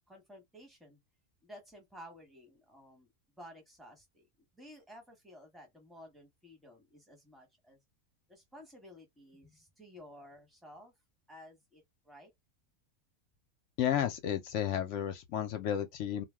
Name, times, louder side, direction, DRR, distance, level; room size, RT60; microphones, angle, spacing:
voice 1, 0.1-1.0 1.4-4.3 4.5-7.8 8.3-10.9 11.3-12.3, equal, ahead, 0.8 m, -54 dB
voice 2, 13.8-16.2, left 10 dB, 65° left, 0.8 m, -32 dB
2.4 x 2.2 x 3.4 m
omnidirectional pair, 1.5 m